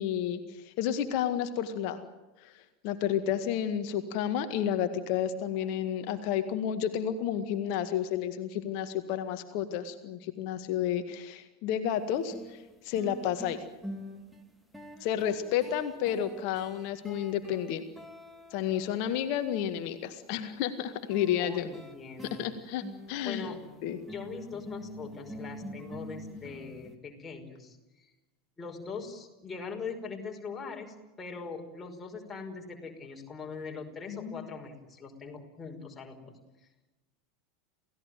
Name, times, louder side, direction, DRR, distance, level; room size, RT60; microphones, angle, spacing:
voice 1, 0.0-2.0 2.4-13.6 15.0-17.8 18.5-21.7 22.2-23.5 23.8-24.0 34.1-34.5, left 9 dB, 50° left, 9 dB, 1.8 m, -31 dB
sound 1, 11.9-12.0 12.3-19.6 21.1-27.0, equal, 5° right, 3.3 m, -46 dB
voice 2, 21.4-22.7 23.2-23.6 24.1-28.1 28.6-36.3, left 5 dB, 15° left, 1 dB, 5.4 m, -41 dB
29.0 x 17.0 x 9.2 m, 1.1 s
figure-of-eight pair, 80°, 0 cm